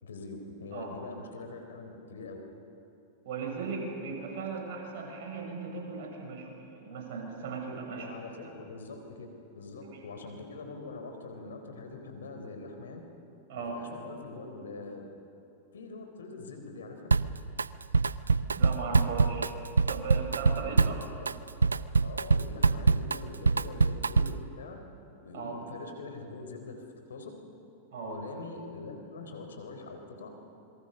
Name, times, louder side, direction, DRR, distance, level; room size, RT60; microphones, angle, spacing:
voice 1, 0.0-2.4 7.9-9.3 9.5-13.0 13.6-15.0 15.7-17.1 20.6-20.9 22.0-24.8 25.2-26.8 27.1-27.3 28.0-30.3, left 3 dB, 80° left, 5 dB, 3.8 m, -43 dB
voice 2, 3.2-8.1 8.4-8.5 9.9-10.0 13.5-13.8 18.6-19.5 19.9-21.0 25.3-25.6 27.9-28.2, right 5 dB, 60° right, 1 dB, 6.9 m, -37 dB
Drum kit, 17.1-17.7 17.9-24.5, right 4 dB, 90° right, 0.5 m, -25 dB
27.0 x 22.5 x 6.7 m, 2.8 s
hypercardioid pair, 100°, 0 cm